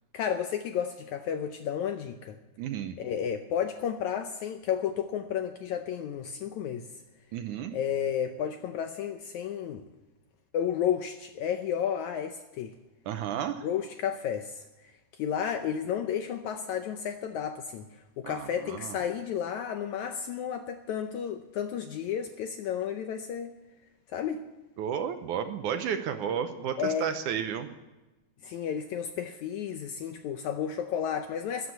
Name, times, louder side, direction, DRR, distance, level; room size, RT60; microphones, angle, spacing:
voice 1, 0.1-2.4 3.0-6.9 7.7-9.8 10.5-12.7 13.6-14.6 15.2-17.9 18.2-23.5 24.1-24.5 26.8-27.1 28.4-31.7, left 8 dB, 75° left, 7 dB, 1.8 m, -32 dB
voice 2, 2.6-3.0 7.3-7.7 13.1-13.7 18.2-19.0 24.8-27.7, right 8 dB, 75° right, 8 dB, 2.0 m, -32 dB
14.0 x 9.7 x 9.4 m, 1.1 s
omnidirectional pair, 4.1 m